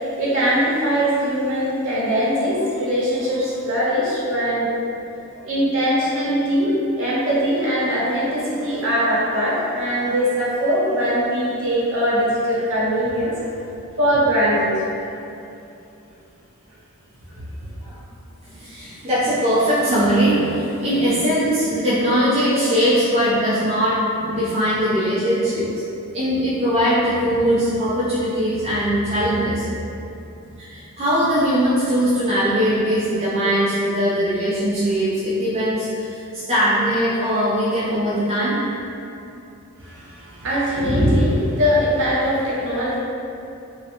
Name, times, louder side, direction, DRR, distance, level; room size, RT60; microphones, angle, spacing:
voice 1, 0.0-4.7 5.4-13.4 14.0-14.8 17.3-17.4 39.8-43.0, equal, 60° right, -8 dB, 0.7 m, -21 dB
voice 2, 18.5-25.7 26.1-29.7 30.6-38.6, equal, 25° right, -10 dB, 0.3 m, -20 dB
2.7 x 2.0 x 2.5 m, 2.7 s
head